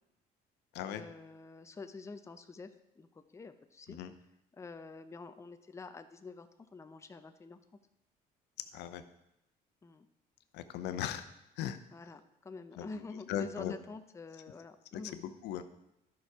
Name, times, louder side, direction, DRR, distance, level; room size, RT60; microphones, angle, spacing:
voice 1, 0.9-4.0 4.6-7.6 9.8-10.1 11.9-15.2, left 4 dB, 15° left, 9 dB, 0.6 m, -47 dB
voice 2, 10.5-11.3 11.6-11.8 12.8-13.0 13.3-13.7 14.9-15.6, left 10 dB, 85° left, 10 dB, 0.7 m, -38 dB
11.0 x 6.1 x 4.7 m, 0.85 s
cardioid pair, 110°, 17 cm